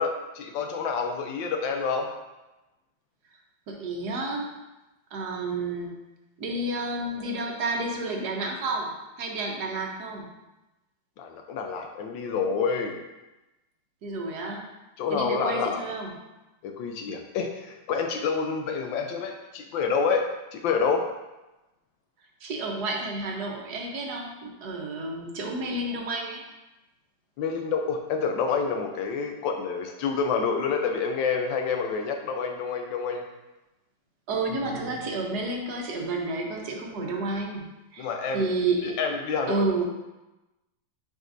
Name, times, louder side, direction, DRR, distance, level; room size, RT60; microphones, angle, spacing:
voice 1, 0.0-2.1 11.2-13.0 15.0-15.9 16.6-21.1 27.4-33.2 38.0-38.5 38.8-39.6, left 5 dB, 85° left, 3 dB, 1.4 m, -28 dB
voice 2, 3.7-4.5 5.1-5.9 6.4-10.3 14.0-14.6 15.1-16.1 22.4-26.5 34.3-38.1 38.3-39.0 39.5-39.9, right 2 dB, 65° right, 1 dB, 1.4 m, -30 dB
7.3 x 5.2 x 2.6 m, 1.0 s
omnidirectional pair, 2.0 m